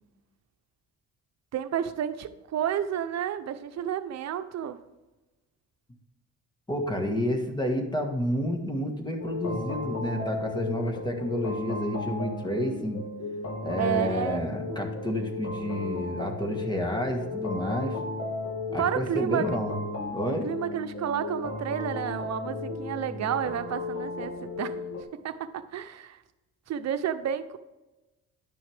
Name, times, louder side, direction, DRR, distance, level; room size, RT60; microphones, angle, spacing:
voice 1, 1.5-4.8 13.8-14.7 18.8-19.6 20.4-24.8 25.2-26.2 26.7-27.6, right 9 dB, 60° right, 10 dB, 0.8 m, -31 dB
voice 2, 6.7-13.0 13.6-18.0 18.7-19.7 20.1-20.5, equal, 15° left, 3 dB, 1.6 m, -30 dB
sound 1, 9.2-25.0, left 3 dB, 55° left, 1.5 m, -35 dB
10.5 x 6.2 x 3.5 m, 1.1 s
cardioid pair, 90°, 30 cm